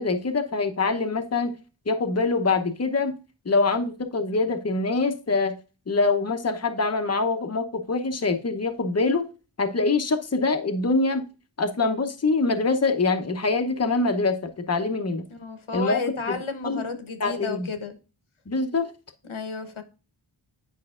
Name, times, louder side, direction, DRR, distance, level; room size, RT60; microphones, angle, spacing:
voice 1, 0.0-1.5 1.9-3.2 3.4-5.5 5.9-9.2 9.6-11.2 11.6-15.2 15.7-16.0 16.3-16.4 16.6-16.8 17.2-17.7 18.5-18.9, left 3 dB, 30° left, 0.8 m, -24 dB
voice 2, 15.3-18.0 19.2-19.8, left 4 dB, 80° left, 1.1 m, -32 dB
8.7 x 5.3 x 2.4 m
wide cardioid pair, 50°, 48 cm